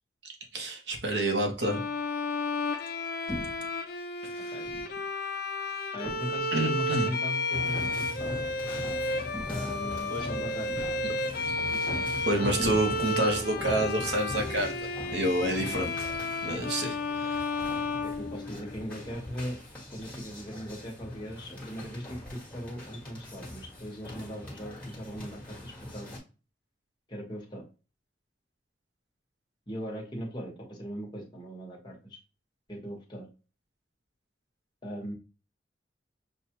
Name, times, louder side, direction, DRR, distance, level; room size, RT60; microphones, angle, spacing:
voice 1, 0.2-1.8 4.2-4.5 6.5-7.1 10.1-10.3 11.0-11.1 12.3-14.7 15.1-15.9 16.4-17.4, right 1 dB, 70° right, 4 dB, 1.0 m, -29 dB
Bowed string instrument, 1.6-18.8, left 2 dB, 55° left, 0.6 m, -32 dB
sound 1, 3.3-3.8 4.6-5.0 6.0-6.5 7.6-7.8 9.3-9.8 10.7-11.2 12.6-13.3, left 1 dB, 15° right, 1.0 m, -41 dB
voice 2, 5.9-8.3 9.5-10.7 11.7-11.9 15.6-15.7 18.0-19.6 19.9-26.2 27.1-27.6 29.7-32.2 32.7-33.3 34.8-35.1, equal, 25° left, -2 dB, 1.2 m, -39 dB
sound 2, 7.5-26.2, left 1 dB, 5° left, 1.5 m, -41 dB
6.3 x 2.4 x 2.9 m, 0.33 s
head